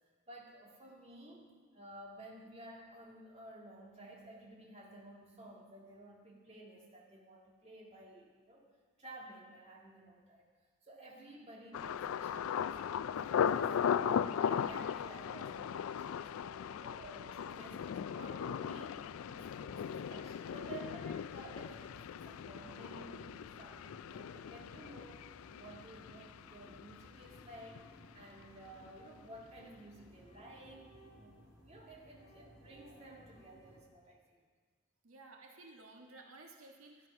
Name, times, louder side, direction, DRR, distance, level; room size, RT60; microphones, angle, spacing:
voice 1, 0.3-8.7 9.0-10.4 10.8-12.8 13.1-25.3 25.6-27.9 28.1-31.3 31.6-34.5, right 1 dB, 30° right, -2 dB, 2.0 m, -53 dB
Thunder, 11.7-27.5 27.8-28.4 28.8-29.1, left 8 dB, 80° left, 0.3 m, -38 dB
sound 1, 18.2-33.8, equal, 20° left, 3.0 m, -60 dB
voice 2, 35.0-37.1, right 2 dB, 90° right, 1 dB, 1.5 m, -55 dB
13.5 x 10.0 x 5.9 m, 1.5 s
head